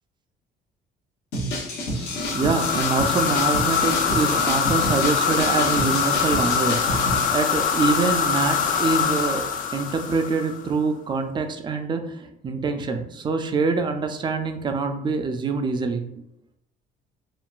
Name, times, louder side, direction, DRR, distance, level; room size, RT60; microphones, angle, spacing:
sound 1, 1.3-7.3, left 1 dB, 75° left, 0.9 m, -29 dB
sound 2, 2.1-10.6, left 7 dB, 50° left, 0.4 m, -23 dB
voice 1, 2.3-16.2, right 4 dB, 25° right, 7 dB, 0.4 m, -25 dB
3.7 x 2.1 x 2.3 m, 0.79 s
cardioid pair, 110°, 17 cm